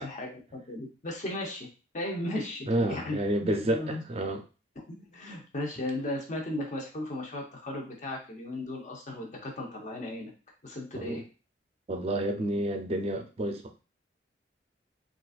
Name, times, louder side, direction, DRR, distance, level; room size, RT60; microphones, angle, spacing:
voice 1, 0.0-1.7 1.9-4.0 4.9-10.3 10.6-11.2, left 1 dB, 45° left, 0 dB, 0.9 m, -36 dB
voice 2, 2.7-4.4 10.9-11.2 11.9-13.8, right 1 dB, 35° right, 4 dB, 0.5 m, -30 dB
4.0 x 2.5 x 2.4 m, 0.33 s
head